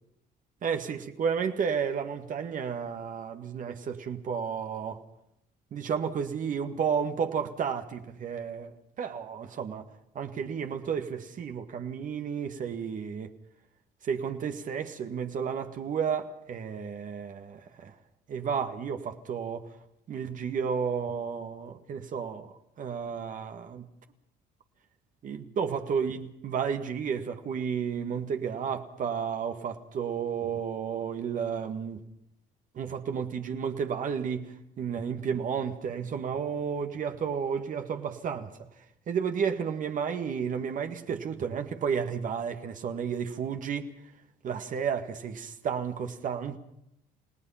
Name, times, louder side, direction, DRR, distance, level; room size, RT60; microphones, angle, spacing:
voice 1, 0.6-5.0 5.7-9.8 10.1-13.3 14.0-17.9 18.3-19.7 20.1-23.9 25.2-32.0 32.7-38.5 39.1-43.9 44.4-46.6, right 7 dB, 50° right, 1.8 m, -32 dB
29.5 x 17.5 x 5.8 m
cardioid pair, 110°, 17 cm